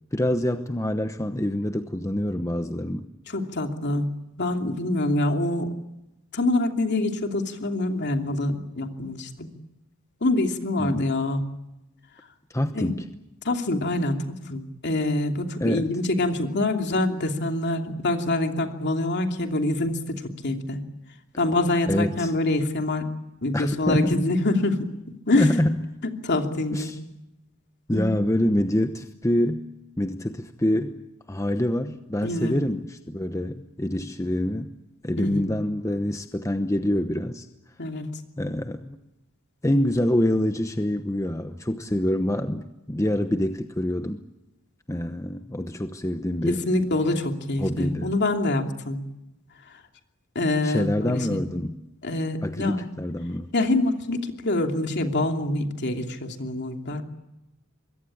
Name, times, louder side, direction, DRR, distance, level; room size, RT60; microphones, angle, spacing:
voice 1, 0.1-3.1 10.8-11.1 12.5-13.1 15.6-15.9 21.9-22.3 23.5-24.2 25.4-25.8 26.7-27.0 27.9-29.7 30.0-31.0 31.3-34.7 35.0-37.5 38.4-39.0 39.6-44.2 44.9-46.6 47.6-48.1 50.6-51.8 52.4-53.5, left 1 dB, 15° left, 8 dB, 1.0 m, -26 dB
voice 2, 3.3-4.1 4.4-5.7 6.3-9.5 10.2-11.4 12.7-12.9 13.4-20.8 21.4-23.1 23.4-24.9 25.3-25.5 26.2-26.9 27.9-28.2 32.2-32.6 35.2-35.5 37.8-38.1 46.5-49.0 50.3-51.4 52.0-52.9 53.5-57.0, left 2 dB, 55° left, 4 dB, 2.9 m, -25 dB
25.0 x 22.5 x 8.7 m, 0.92 s
head